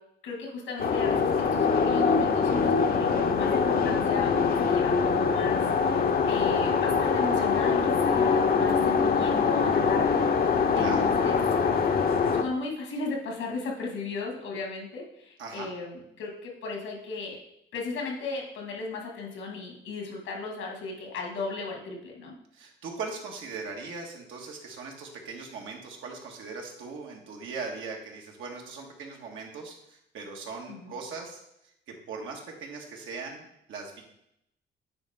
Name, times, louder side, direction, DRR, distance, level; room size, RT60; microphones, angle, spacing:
voice 1, 0.2-10.3 10.7-11.4 12.4-17.4 17.7-22.4 30.7-30.9, left 4 dB, 85° left, 0 dB, 2.0 m, -36 dB
sound 1, 0.8-12.4, left 5 dB, 50° left, 0.7 m, -24 dB
voice 2, 10.8-11.1 15.4-15.7 22.5-31.4 31.9-34.0, right 4 dB, 85° right, 0 dB, 1.7 m, -39 dB
9.5 x 4.2 x 3.6 m, 0.78 s
cardioid pair, 90°, 20 cm